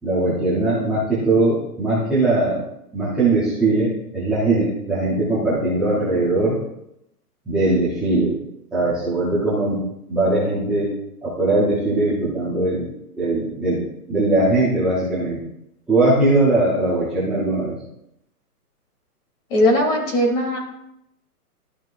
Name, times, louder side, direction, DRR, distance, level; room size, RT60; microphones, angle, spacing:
voice 1, 0.0-2.6 2.9-6.6 7.5-8.4 8.7-9.8 10.1-10.9 11.2-12.9 13.2-13.8 14.1-15.4 15.9-17.8, right 2 dB, ahead, -12 dB, 0.9 m, -20 dB
voice 2, 19.5-20.6, left 1 dB, 35° left, 1 dB, 2.9 m, -18 dB
13.0 x 5.8 x 2.5 m, 0.80 s
hypercardioid pair, 160°, 47 cm